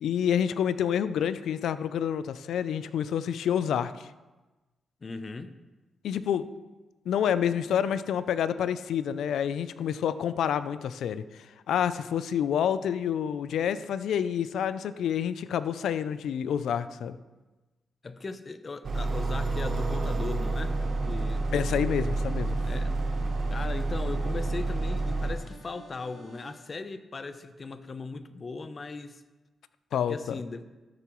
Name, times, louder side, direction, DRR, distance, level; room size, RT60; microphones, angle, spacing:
voice 1, 0.0-4.1 6.0-6.5 7.1-17.2 21.5-22.6 29.9-30.4, left 9 dB, 85° left, 14 dB, 0.4 m, -28 dB
voice 2, 5.0-5.5 18.0-20.8 21.0-21.5 22.6-22.9 23.5-29.2 29.9-30.7, left 3 dB, 40° left, 11 dB, 0.6 m, -38 dB
sound 1, 18.8-25.4, right 2 dB, 50° right, 1.0 m, -29 dB
sound 2, 18.8-26.5, right 3 dB, 80° right, 3.2 m, -52 dB
13.0 x 6.9 x 3.1 m, 1.1 s
cardioid pair, 85°, 0 cm